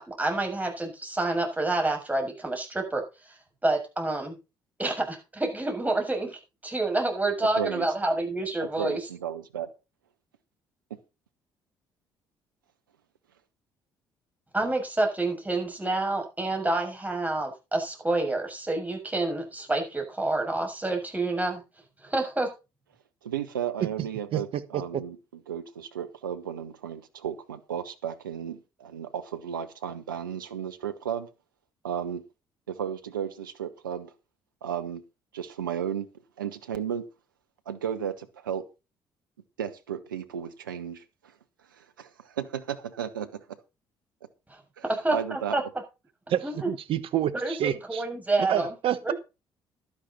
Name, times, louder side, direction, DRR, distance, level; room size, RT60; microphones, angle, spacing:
voice 1, 0.0-3.0 3.3-3.4 3.6-4.4 4.8-9.0 14.5-21.6 22.0-22.5 44.5-45.6 46.4-46.7 47.4-48.7 49.0-49.1, right 2 dB, 15° right, 7.2 m, -28 dB
voice 2, 7.6-7.9 8.6-9.7 10.9-11.0 23.2-25.2 25.5-31.3 31.8-32.2 32.7-34.1 34.6-35.0 35.3-36.1 36.4-37.1 37.7-38.7 39.6-41.0 41.7-43.4 44.8-44.9 45.1-45.6, right 9 dB, 85° right, 0.9 m, -34 dB
voice 3, 24.3-25.0 46.3-48.0 48.5-49.1, right 11 dB, 60° right, 1.3 m, -28 dB
12.0 x 11.0 x 4.3 m
hypercardioid pair, 50°, 11 cm